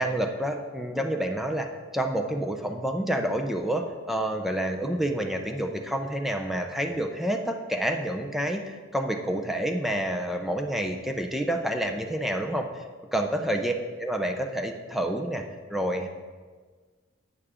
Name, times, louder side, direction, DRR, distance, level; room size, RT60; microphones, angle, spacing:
voice 1, 0.0-1.7 1.9-12.8 13.1-13.7 14.0-15.5 15.7-16.1, right 1 dB, ahead, 4 dB, 0.5 m, -28 dB
8.5 x 7.0 x 4.9 m, 1.5 s
head